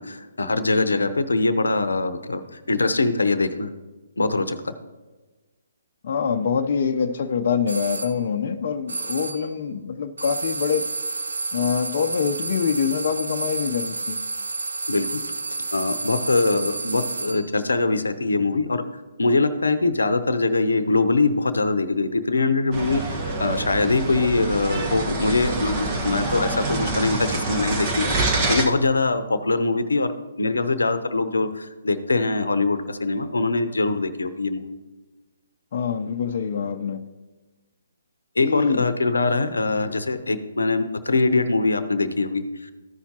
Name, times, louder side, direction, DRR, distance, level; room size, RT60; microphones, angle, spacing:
voice 1, 0.0-3.7 4.2-4.7 14.9-15.2 15.7-18.8 19.2-28.1 28.5-34.7 38.4-42.7, left 3 dB, 85° left, 12 dB, 0.7 m, -23 dB
voice 2, 6.0-10.9 11.5-14.2 35.7-37.0 38.4-38.9, left 6 dB, 50° left, 5 dB, 0.6 m, -25 dB
sound 1, 7.7-8.2 8.9-9.5 10.2-17.5, right 3 dB, 80° right, 0.5 m, -30 dB
sound 2, 22.7-28.6, right 2 dB, 30° right, 1.4 m, -26 dB
14.5 x 5.7 x 2.9 m, 1.2 s
figure-of-eight pair, 140°, 0 cm